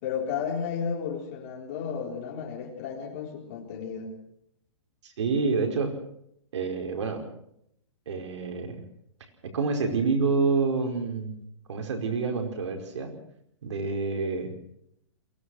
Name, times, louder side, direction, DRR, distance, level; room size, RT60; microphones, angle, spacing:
voice 1, 0.0-4.2, left 6 dB, 35° left, 2 dB, 3.9 m, -33 dB
voice 2, 5.0-6.0 6.5-7.2 8.1-8.8 9.4-11.3 11.7-13.1 13.6-14.5, right 4 dB, 70° right, 4 dB, 5.0 m, -28 dB
23.0 x 17.5 x 6.4 m, 0.74 s
hypercardioid pair, 165°, 15 cm